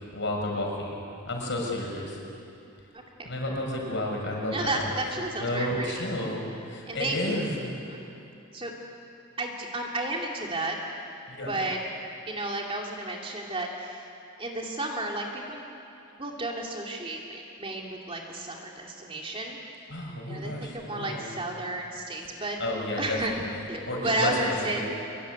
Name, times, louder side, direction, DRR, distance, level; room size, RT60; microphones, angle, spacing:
voice 1, 0.1-1.0 1.3-2.2 3.2-5.0 5.4-7.7 11.3-11.6 19.9-21.3 22.6-24.8, left 1 dB, 55° left, 0 dB, 6.2 m, -31 dB
voice 2, 4.5-5.9 6.9-7.2 7.8-8.1 8.5-8.7 9.4-10.8 11.5-11.8 12.3-14.0 14.4-15.6 16.2-19.6 20.3-22.6 23.0-23.3 23.7-24.8, right 2 dB, 25° right, 0 dB, 2.7 m, -32 dB
24.5 x 22.5 x 9.4 m, 2.8 s
head